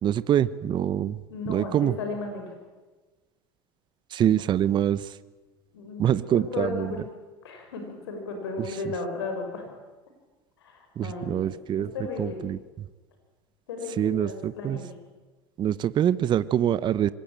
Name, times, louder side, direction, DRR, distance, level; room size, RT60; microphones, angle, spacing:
voice 1, 0.0-1.2 1.5-1.9 4.1-5.2 6.0-6.9 11.0-11.9 12.2-12.6 14.0-14.8 15.6-17.1, right 10 dB, 35° right, 16 dB, 0.9 m, -25 dB
voice 2, 1.3-2.5 4.3-4.4 5.7-7.1 7.4-9.6 10.6-11.5 11.9-12.4 13.7-14.8, left 3 dB, 85° left, 4 dB, 6.7 m, -35 dB
25.5 x 21.5 x 9.1 m, 1.2 s
hypercardioid pair, 100°, 13 cm